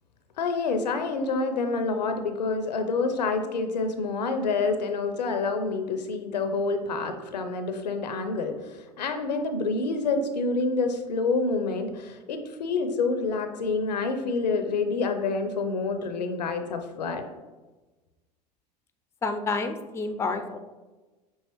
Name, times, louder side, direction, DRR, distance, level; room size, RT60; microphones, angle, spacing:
voice 1, 0.4-17.2, left 3 dB, 80° left, 7 dB, 0.5 m, -27 dB
voice 2, 19.2-20.6, left 3 dB, 15° left, 8 dB, 0.3 m, -29 dB
5.5 x 2.8 x 2.9 m, 1.2 s
figure-of-eight pair, 75°, 21 cm